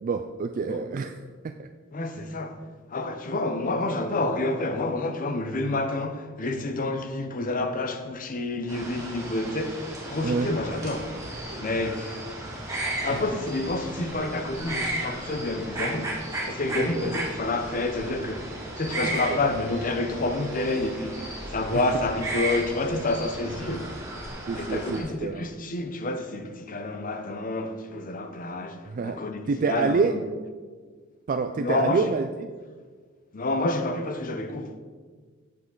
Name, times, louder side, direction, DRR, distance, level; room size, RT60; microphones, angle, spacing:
voice 1, 0.0-1.1 1.4-1.7 10.2-10.5 13.1-13.2 16.7-17.1 19.0-19.4 21.7-21.8 24.5-25.5 28.9-29.2 29.5-30.1 31.3-32.3, right 4 dB, 40° right, 0.3 m, -27 dB
voice 2, 1.9-2.6 2.9-11.2 11.6-12.2 13.0-23.9 24.2-30.2 31.6-32.1 33.3-34.8, left 2 dB, 40° left, 0.7 m, -29 dB
sound 1, 8.7-25.0, right 1 dB, 15° right, 2.1 m, -35 dB
8.4 x 7.5 x 3.9 m
head